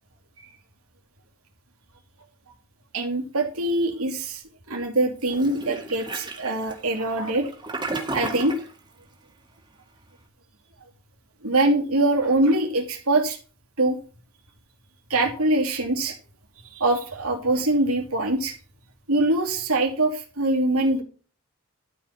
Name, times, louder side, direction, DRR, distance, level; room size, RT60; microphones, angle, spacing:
voice 1, 2.9-7.5 8.1-8.5 11.4-13.4 13.8-14.0 15.1-16.1 16.7-18.5 19.1-21.0, right 2 dB, 85° right, 2 dB, 2.8 m, -23 dB
Toilet flush, 5.2-8.7, right 2 dB, 20° right, 2.0 m, -33 dB
12.5 x 5.5 x 5.8 m, 0.37 s
head